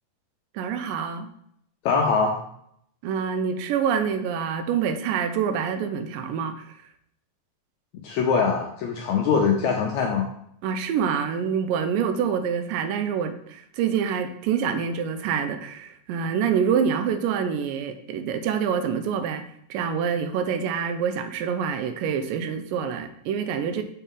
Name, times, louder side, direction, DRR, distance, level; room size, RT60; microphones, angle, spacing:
voice 1, 0.5-1.3 3.0-6.7 10.6-19.4 19.7-23.8, right 7 dB, 85° right, 9 dB, 2.2 m, -26 dB
voice 2, 1.8-2.4 8.0-10.3, left 5 dB, 80° left, 1 dB, 1.6 m, -22 dB
6.3 x 5.4 x 3.6 m, 0.70 s
omnidirectional pair, 3.9 m